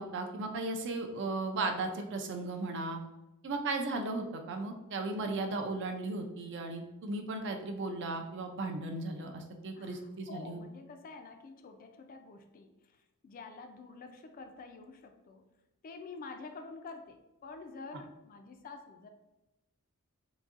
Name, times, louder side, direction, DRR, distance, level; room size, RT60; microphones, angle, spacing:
voice 1, 0.0-3.0 3.4-10.6, right 2 dB, 55° right, 5 dB, 0.4 m, -36 dB
voice 2, 9.7-12.7 13.2-15.4 15.8-19.1, left 4 dB, 40° left, 6 dB, 0.3 m, -48 dB
3.9 x 2.6 x 2.4 m, 1.0 s
head